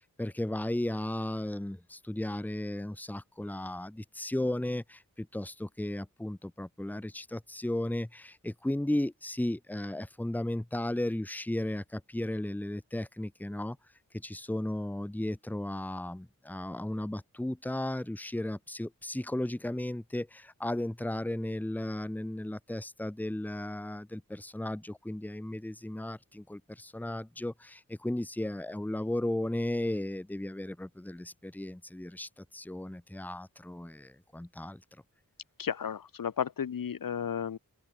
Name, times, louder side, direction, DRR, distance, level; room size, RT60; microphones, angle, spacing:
voice 1, 0.2-13.8 14.2-34.8, left 1 dB, 5° left, 1.1 m, -35 dB
voice 2, 35.6-37.6, left 7 dB, 80° left, 1.3 m, -33 dB
open air
wide cardioid pair, 95°, 33 cm